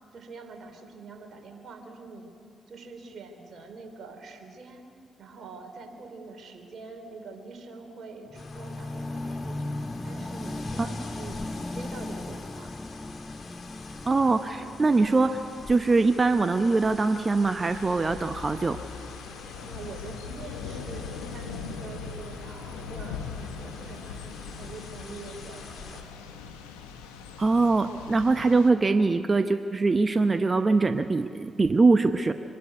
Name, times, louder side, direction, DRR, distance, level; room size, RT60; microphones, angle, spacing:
voice 1, 0.1-2.3 2.7-4.8 5.2-12.7 19.5-26.0, right 3 dB, 55° right, 4 dB, 3.1 m, -44 dB
sound 1, 8.3-26.0, left 4 dB, 55° left, 2.2 m, -46 dB
sound 2, 8.3-18.4 19.1-19.2, left 2 dB, 20° left, 0.6 m, -38 dB
voice 2, 14.1-15.4 15.7-18.8 27.4-32.3, right 3 dB, 35° right, 9 dB, 0.8 m, -22 dB
Thunder / Rain, 17.6-28.7, left 5 dB, 85° left, 1.1 m, -40 dB
24.5 x 12.0 x 9.6 m, 2.4 s
hypercardioid pair, 45°, 0 cm